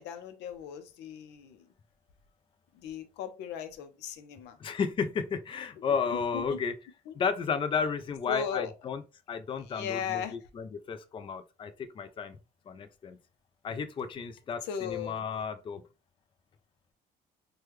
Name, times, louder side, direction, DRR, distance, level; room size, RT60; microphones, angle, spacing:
voice 1, 0.0-1.6 2.8-4.6 6.1-6.4 7.1-7.2 8.3-8.7 9.7-10.3 14.6-15.2, left 8 dB, 85° left, 0.6 m, -37 dB
voice 2, 4.6-6.7 7.1-9.0 9.3-12.4 12.7-13.2 13.6-15.8, left 6 dB, 30° left, 0.4 m, -33 dB
3.2 x 2.2 x 3.0 m
cardioid pair, 110°, 17 cm